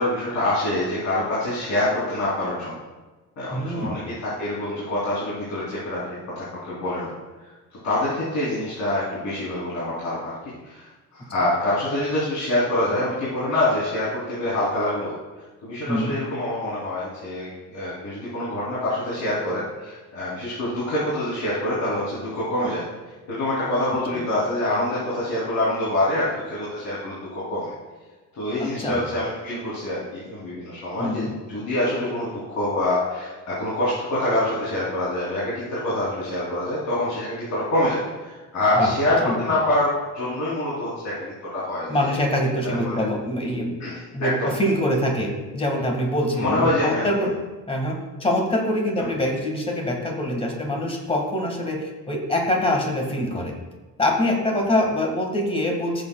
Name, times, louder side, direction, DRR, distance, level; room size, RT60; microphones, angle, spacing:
voice 1, 0.0-2.7 3.4-6.0 6.3-7.1 7.8-10.3 10.6-15.1 15.6-22.8 23.3-27.7 28.3-42.2 42.6-43.0 43.8-44.5 46.4-47.1, left 1 dB, 55° left, -9 dB, 3.2 m, -25 dB
voice 2, 3.5-4.0 15.9-16.2 24.1-24.2 28.6-29.0 31.0-31.3 38.8-38.9 39.2-39.4 41.9-43.8 44.1-47.3 47.7-53.5 54.0-56.0, left 1 dB, 20° left, 1 dB, 1.8 m, -24 dB
14.5 x 7.9 x 2.3 m, 1.2 s
cardioid pair, 135°, 32 cm